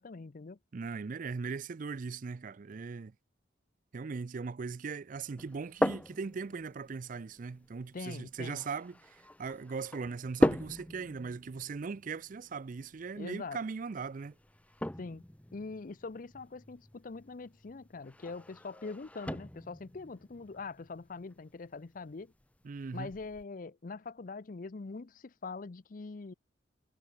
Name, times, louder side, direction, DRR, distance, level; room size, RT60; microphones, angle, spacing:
voice 1, 0.0-0.6 7.9-8.6 13.1-13.6 15.0-15.2 15.5-22.3 22.9-26.3, left 4 dB, 50° left, 0.6 m, -43 dB
voice 2, 0.7-3.1 3.9-14.4 22.6-23.1, right 5 dB, 45° right, 0.4 m, -39 dB
sound 1, 5.4-23.4, left 1 dB, 10° left, 0.7 m, -39 dB
head